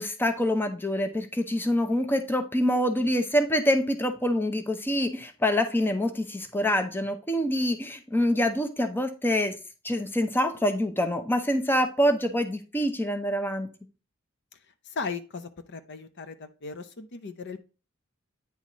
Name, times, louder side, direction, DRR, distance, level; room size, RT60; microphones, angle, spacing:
voice 1, 0.0-9.5 9.8-13.7, equal, 10° left, 7 dB, 0.7 m, -26 dB
voice 2, 14.9-17.6, left 4 dB, 55° left, 10 dB, 0.6 m, -37 dB
9.3 x 4.2 x 3.0 m, 0.33 s
head